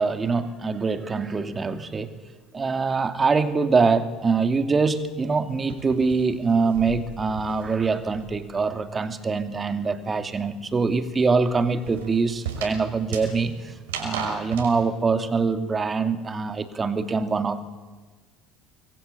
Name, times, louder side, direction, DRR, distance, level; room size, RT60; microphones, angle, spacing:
voice 1, 0.0-2.1 2.5-17.6, right 4 dB, 25° right, 9 dB, 2.7 m, -24 dB
sound 1, 4.9-8.6 8.9-14.7, right 5 dB, 70° right, 5.7 m, -38 dB
26.0 x 22.0 x 8.5 m, 1.4 s
figure-of-eight pair, 60°, 0 cm